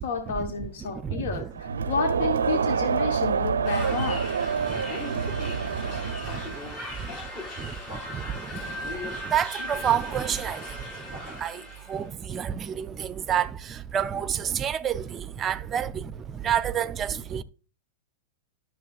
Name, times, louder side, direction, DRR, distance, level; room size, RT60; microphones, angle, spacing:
voice 1, 0.0-4.3 6.9-7.0 8.6-8.8, left 5 dB, 65° left, 1.0 m, -31 dB
voice 2, 0.9-1.5 4.7-7.2 7.6-17.4, right 9 dB, 25° right, 0.5 m, -30 dB
Crowd, 1.5-6.7, right 6 dB, 80° right, 0.4 m, -27 dB
sound 1, 3.6-12.1, left 1 dB, 35° left, 4.9 m, -37 dB
11.5 x 6.3 x 2.4 m
hypercardioid pair, 100°, 0 cm